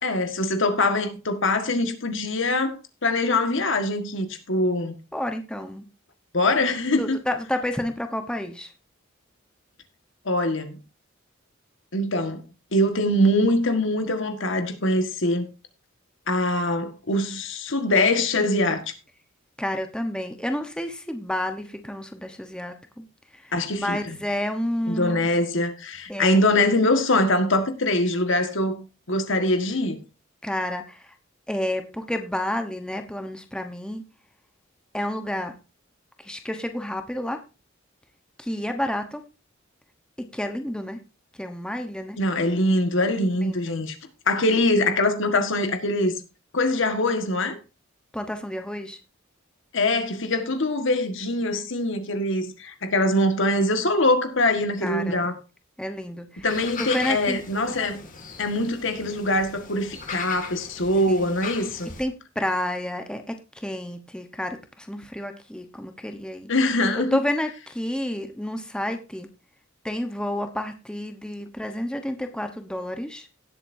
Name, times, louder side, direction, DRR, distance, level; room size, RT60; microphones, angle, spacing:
voice 1, 0.0-4.9 6.3-7.2 10.2-10.8 11.9-12.4 12.7-15.4 16.3-18.8 23.5-24.2 24.9-30.0 42.2-43.9 44.3-46.2 46.5-47.6 49.7-55.4 56.4-58.0 58.4-61.9 66.5-67.2, left 1 dB, 65° left, 1.7 m, -23 dB
voice 2, 5.1-5.8 7.0-8.7 19.6-23.1 23.3-25.2 26.1-26.4 30.4-31.1 31.5-34.0 34.9-35.5 36.2-37.4 38.4-39.2 40.2-41.0 41.4-42.2 43.4-43.8 48.1-49.0 54.8-55.2 55.8-56.4 56.8-57.4 61.1-61.3 62.0-66.5 66.9-69.3 69.8-73.3, left 1 dB, 5° left, 1.1 m, -30 dB
sound 1, 56.5-62.0, left 5 dB, 45° left, 2.2 m, -38 dB
17.5 x 8.0 x 2.7 m
head